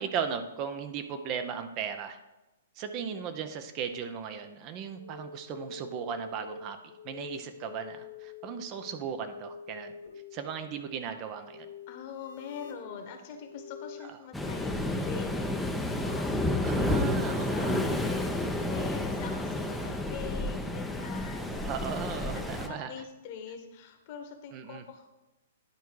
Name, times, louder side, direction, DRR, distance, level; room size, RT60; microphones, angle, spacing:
voice 1, 0.0-2.2 2.8-6.8 7.0-9.9 10.3-11.7 16.6-17.8 21.6-22.9 24.5-24.8, right 7 dB, 35° right, 8 dB, 0.7 m, -36 dB
sound 1, 4.9-14.1, left 4 dB, 75° left, 1.8 m, -47 dB
voice 2, 11.9-15.6 15.9-21.6 22.0-25.1, left 7 dB, 45° left, 5 dB, 1.4 m, -44 dB
Waves surf, 14.3-22.7, left 1 dB, 5° left, 0.7 m, -30 dB
10.5 x 4.5 x 4.7 m, 1.0 s
figure-of-eight pair, 115°, 0 cm